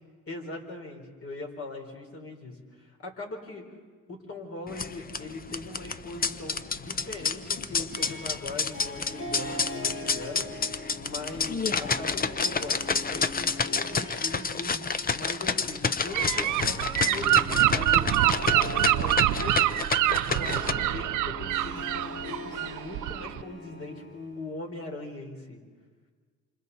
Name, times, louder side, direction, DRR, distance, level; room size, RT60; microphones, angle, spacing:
voice 1, 0.3-3.6 4.1-10.5 11.0-19.6 20.1-25.6, left 2 dB, 50° left, 2 dB, 4.2 m, -40 dB
sound 1, 4.7-20.7, left 5 dB, 30° left, 0.8 m, -30 dB
Harp, 7.9-24.7, left 1 dB, 85° left, 4.8 m, -41 dB
Gull seagull / Wind, 16.1-23.4, right 14 dB, 85° right, 0.7 m, -25 dB
27.5 x 26.0 x 4.2 m, 1.5 s
cardioid pair, 90°, 30 cm